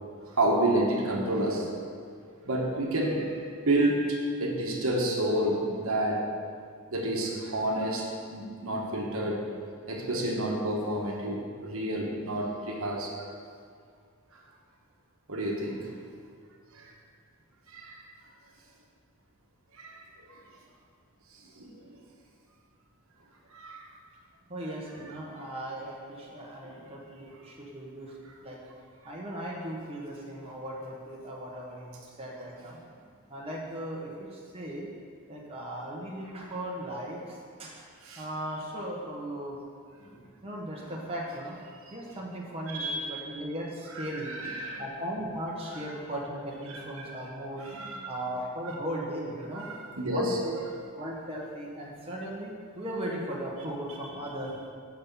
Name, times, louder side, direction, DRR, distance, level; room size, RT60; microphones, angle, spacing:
voice 1, 0.3-1.7 2.4-6.2 6.9-9.4 9.9-13.1 15.3-15.9 16.7-16.9 17.7-18.0 19.8-20.4 21.6-21.8 23.5-23.9 26.6-26.8 38.0-38.2 41.8-41.9 42.7-43.1 43.9-44.9 46.7-47.1 47.6-48.0 48.6-48.7 49.5-50.4, right 1 dB, 65° right, -1 dB, 1.2 m, -30 dB
voice 2, 24.5-28.1 28.4-28.6 29.0-32.8 33.3-34.9 35.3-37.8 38.2-39.6 40.4-41.5 41.9-44.3 44.8-47.6 48.1-49.7 50.1-50.6 50.9-54.7, right 1 dB, 25° right, -4 dB, 1.0 m, -37 dB
6.1 x 5.7 x 7.1 m, 2.2 s
head